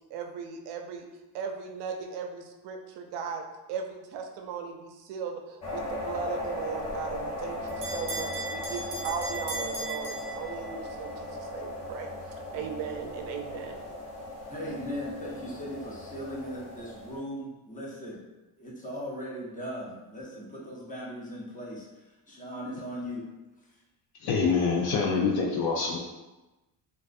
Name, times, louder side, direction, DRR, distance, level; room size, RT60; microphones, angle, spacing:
voice 1, 0.1-1.1 1.3-12.1 12.5-13.8, right 6 dB, 70° right, 4 dB, 0.5 m, -37 dB
sound 1, 5.6-17.2, left 1 dB, 35° left, 1.1 m, -37 dB
Bell, 6.9-10.9, right 2 dB, 25° right, 0.6 m, -38 dB
voice 2, 14.5-18.2 18.6-23.3 23.7-23.8, equal, 20° left, -4 dB, 0.6 m, -38 dB
voice 3, 24.2-26.0, left 5 dB, 60° left, -1 dB, 0.5 m, -25 dB
2.3 x 2.1 x 2.5 m, 1.1 s
cardioid pair, 95°, 45 cm